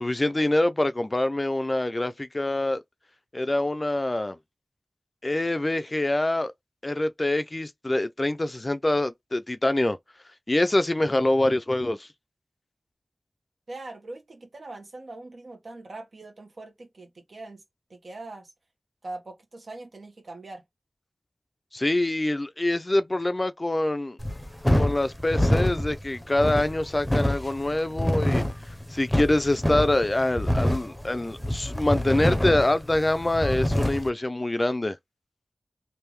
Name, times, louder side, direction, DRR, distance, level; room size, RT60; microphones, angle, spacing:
voice 1, 0.0-2.8 3.3-4.4 5.2-6.5 6.8-10.0 10.5-12.1 21.7-24.2 24.8-28.4 28.9-35.0, left 1 dB, 35° left, 0.4 m, -25 dB
voice 2, 13.7-17.6 17.9-18.5 19.0-20.6, right 2 dB, 75° right, 1.3 m, -42 dB
sound 1, 24.2-34.1, left 1 dB, 5° left, 0.7 m, -26 dB
3.4 x 2.6 x 3.0 m
wide cardioid pair, 50°, 0 cm